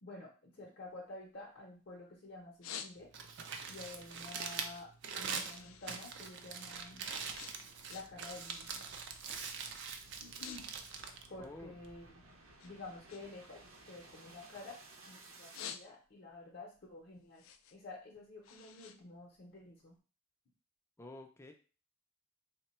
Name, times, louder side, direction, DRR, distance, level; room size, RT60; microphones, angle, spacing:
voice 1, 0.0-3.1 3.7-7.1 7.9-8.8 10.2-10.7 11.3-12.3 12.6-17.4 17.7-20.0, left 2 dB, 55° left, -2 dB, 0.7 m, -50 dB
sound 1, 0.9-2.0 2.4-3.4 3.8-6.0 6.3-8.3 8.6-9.0 9.6-9.8 10.1-10.6 10.9-12.1 12.6-14.9 15.3-16.3 16.7-19.9, left 8 dB, 80° left, 0.3 m, -51 dB
Crumpling crinkling, 3.0-12.1, right 6 dB, 60° right, 0.4 m, -43 dB
sound 2, 4.7-15.7, right 2 dB, 90° right, 0.7 m, -60 dB
voice 2, 11.4-11.8 21.0-21.5, left 1 dB, 15° left, 4 dB, 0.4 m, -50 dB
3.2 x 2.2 x 4.2 m, 0.37 s
head